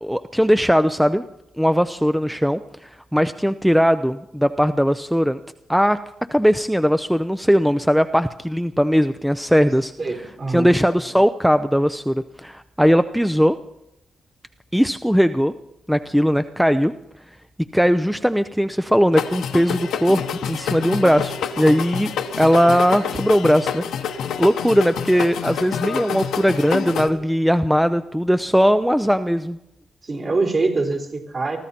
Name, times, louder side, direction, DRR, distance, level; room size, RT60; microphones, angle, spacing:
voice 1, 0.0-1.2 1.6-5.4 5.7-6.0 6.3-9.9 10.5-13.6 14.7-15.5 15.9-16.9 17.7-22.1 22.4-23.8 24.4-29.6, equal, ahead, 11 dB, 0.5 m, -19 dB
voice 2, 10.0-10.7 30.0-31.6, right 3 dB, 45° right, 0 dB, 4.4 m, -24 dB
sound 1, 19.1-27.1, left 7 dB, 80° left, 1.1 m, -27 dB
23.5 x 14.0 x 4.3 m, 0.85 s
cardioid pair, 70°, 0 cm